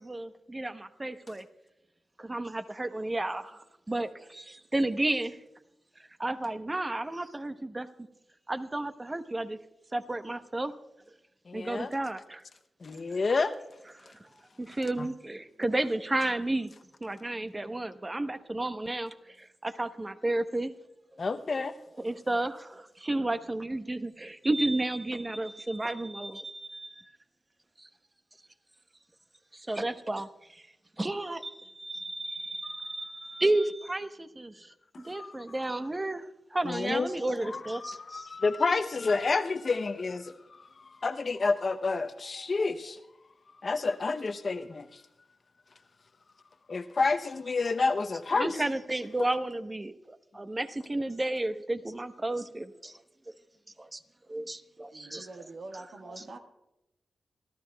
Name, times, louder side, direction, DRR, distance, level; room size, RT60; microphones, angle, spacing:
voice 1, 0.0-1.5 2.2-5.4 6.2-8.1 8.5-9.6 9.9-10.7 11.5-12.4 13.9-14.3 14.6-16.7 17.0-20.7 22.0-27.1 27.8-27.9 29.5-30.6 31.0-34.7 35.0-38.3 48.3-53.0 53.8-54.0 54.3-55.3 56.1-56.3, right 2 dB, 30° right, 10 dB, 1.0 m, -32 dB
voice 2, 11.5-11.9 12.8-13.5 15.0-15.1 21.2-21.7 33.3-33.4 34.9-35.3 36.6-40.3 40.8-43.0 43.6-45.0 46.7-48.5, left 4 dB, 55° left, 9 dB, 0.7 m, -29 dB
voice 3, 54.9-56.4, right 3 dB, 70° right, 3 dB, 1.6 m, -45 dB
27.0 x 12.5 x 2.3 m, 0.91 s
supercardioid pair, 45°, 0 cm